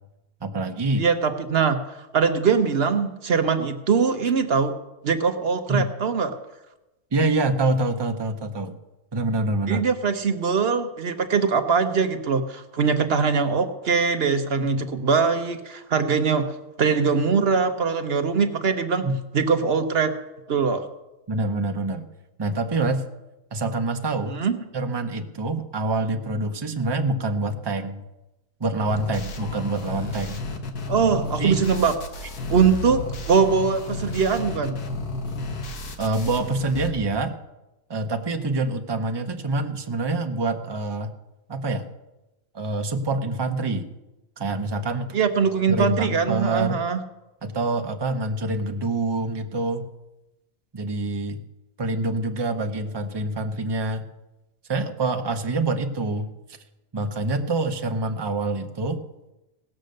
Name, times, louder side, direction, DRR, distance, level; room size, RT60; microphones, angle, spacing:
voice 1, 0.4-1.0 5.7-5.8 7.1-8.7 9.1-9.9 19.0-19.2 21.3-22.1 22.4-23.1 23.5-24.4 24.7-28.0 28.6-30.4 31.4-31.6 36.0-37.3 37.9-41.1 41.5-41.9 42.5-43.9 44.4-45.1 45.7-46.8 47.4-49.8 50.7-51.4 51.8-54.0 54.7-56.3 56.9-59.0, right 2 dB, 25° right, 6 dB, 0.6 m, -26 dB
voice 2, 1.0-4.7 5.0-6.4 9.7-19.1 19.3-20.2 20.5-20.9 24.3-24.6 30.9-31.9 32.5-34.8 45.1-47.0, right 5 dB, 50° right, 7 dB, 0.9 m, -22 dB
sound 1, 28.9-36.9, left 2 dB, 85° left, 1.8 m, -32 dB
17.5 x 6.6 x 6.5 m, 0.99 s
omnidirectional pair, 1.6 m